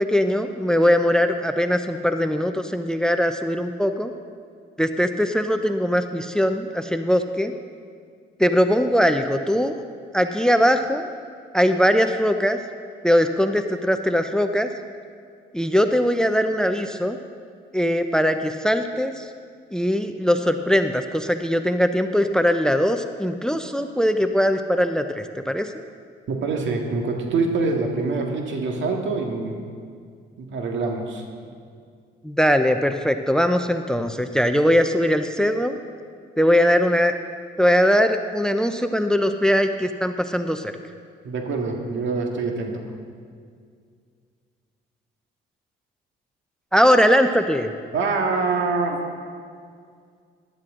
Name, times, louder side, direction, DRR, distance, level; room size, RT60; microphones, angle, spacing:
voice 1, 0.0-4.1 4.8-7.5 8.4-9.7 10.1-11.1 11.5-12.6 13.0-14.7 15.5-17.2 17.7-19.3 19.7-25.7 32.2-35.8 36.4-37.1 37.6-40.7 46.7-47.7, equal, 5° left, 8 dB, 0.6 m, -21 dB
voice 2, 26.3-29.6 30.4-31.2 41.2-42.8 47.9-49.0, right 3 dB, 70° right, 2 dB, 1.9 m, -25 dB
15.5 x 11.5 x 3.8 m, 2.1 s
cardioid pair, 90°, 20 cm